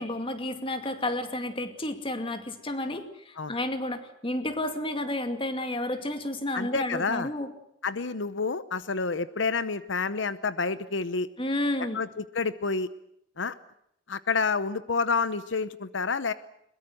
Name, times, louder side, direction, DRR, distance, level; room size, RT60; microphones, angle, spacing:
voice 1, 0.0-7.5 11.4-12.0, left 1 dB, 30° left, 8 dB, 2.3 m, -31 dB
voice 2, 6.5-7.3 7.8-11.3 11.9-12.9 13.4-13.5 14.1-16.3, left 4 dB, 80° left, 14 dB, 0.9 m, -29 dB
22.5 x 22.0 x 7.8 m, 0.75 s
head